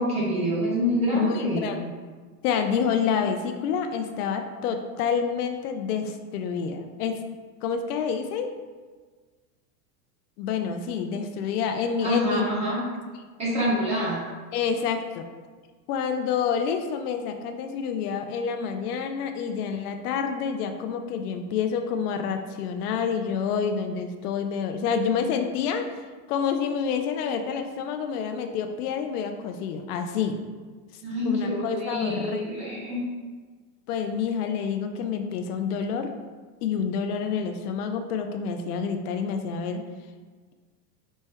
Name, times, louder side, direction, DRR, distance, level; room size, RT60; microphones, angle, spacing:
voice 1, 0.0-1.7 11.1-11.2 12.0-12.8 13.4-14.2 31.0-33.0, equal, 15° right, -7 dB, 0.9 m, -26 dB
voice 2, 1.1-1.9 2.4-7.2 7.6-8.5 10.4-12.5 14.5-15.3 15.9-25.8 26.3-30.4 31.2-32.4 33.9-36.1 36.6-39.8, left 6 dB, 75° left, 6 dB, 0.5 m, -28 dB
4.2 x 2.1 x 3.4 m, 1.4 s
supercardioid pair, 160°, 46 cm